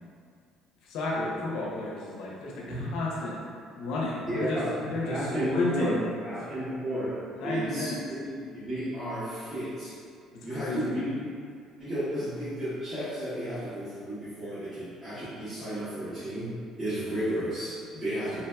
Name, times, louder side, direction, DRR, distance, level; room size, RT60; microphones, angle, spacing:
voice 1, 0.9-3.4 3.7-4.6 4.9-6.0 7.3-8.0 10.5-11.0 18.0-18.4, left 2 dB, 75° left, -4 dB, 0.7 m, -32 dB
voice 2, 4.2-7.1 7.4-9.9 10.4-11.1 11.8-16.5 16.8-18.4, right 1 dB, 20° right, -17 dB, 1.4 m, -33 dB
4.0 x 2.8 x 2.3 m, 2.2 s
cardioid pair, 115°, 0 cm